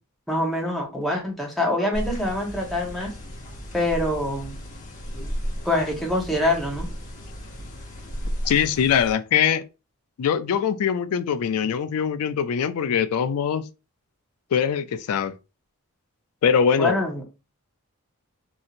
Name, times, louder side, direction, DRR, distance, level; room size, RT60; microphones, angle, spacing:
voice 1, 0.3-3.1 3.7-4.6 5.6-6.9 16.8-17.2, left 1 dB, ahead, 0.8 m, -25 dB
sound 1, 1.9-9.1, equal, 35° left, 0.7 m, -34 dB
voice 2, 8.5-9.6 10.2-13.7 14.5-15.3 16.4-17.0, left 7 dB, 85° left, 0.4 m, -22 dB
2.8 x 2.7 x 2.4 m
head